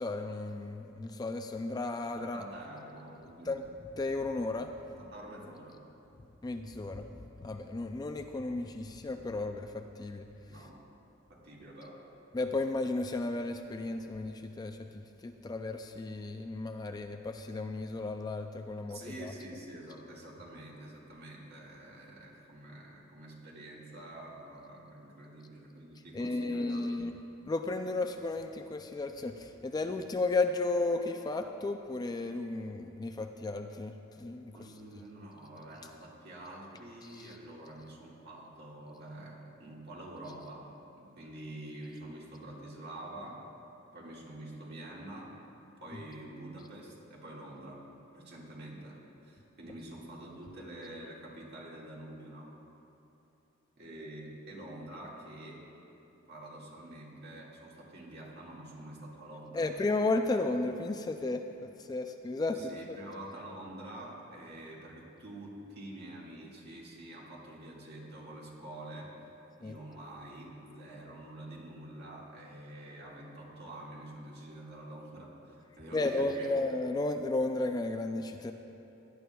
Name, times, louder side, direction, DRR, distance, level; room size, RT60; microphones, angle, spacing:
voice 1, 0.0-2.4 3.5-3.6 4.0-4.7 6.4-10.3 12.3-19.3 26.1-27.1 27.4-34.7 37.1-37.4 59.5-62.6 62.9-63.0 69.6-69.8 75.9-78.5, left 2 dB, 20° left, 6 dB, 0.3 m, -34 dB
voice 2, 2.2-3.6 4.9-5.8 10.5-10.9 11.3-12.1 18.9-27.0 34.5-40.7 41.0-43.5 43.9-45.4 45.8-47.8 48.1-52.6 53.8-55.7 56.3-59.7 62.5-69.2 69.6-76.6, right 1 dB, 55° right, -4 dB, 1.9 m, -47 dB
17.5 x 11.0 x 2.3 m, 2.9 s
head